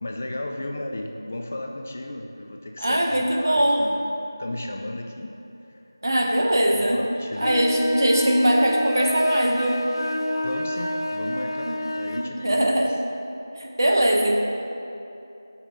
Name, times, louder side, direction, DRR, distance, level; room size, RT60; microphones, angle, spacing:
voice 1, 0.0-4.0 4.4-5.4 5.7-5.8 6.5-7.5 10.4-12.6, left 1 dB, 25° left, 2 dB, 0.4 m, -34 dB
voice 2, 2.8-3.9 6.0-7.0 7.4-9.8 11.7-11.8 12.1-12.9 13.6-14.4, right 1 dB, 60° right, 1 dB, 1.1 m, -21 dB
sound 1, 7.3-12.3, left 1 dB, 85° left, 0.7 m, -28 dB
11.0 x 5.5 x 3.8 m, 2.8 s
figure-of-eight pair, 175°, 2 cm